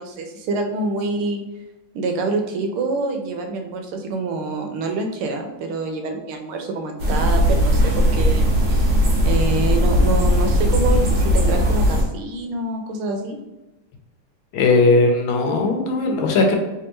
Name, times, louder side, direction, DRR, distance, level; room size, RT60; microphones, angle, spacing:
voice 1, 0.0-1.4 1.9-8.5 9.2-13.4, right 3 dB, 80° right, 4 dB, 1.5 m, -26 dB
sound 1, 7.0-12.0, equal, 55° right, 1.0 m, -18 dB
voice 2, 14.5-16.6, left 3 dB, 75° left, 3 dB, 1.4 m, -18 dB
3.4 x 3.4 x 2.9 m, 1.0 s
omnidirectional pair, 2.3 m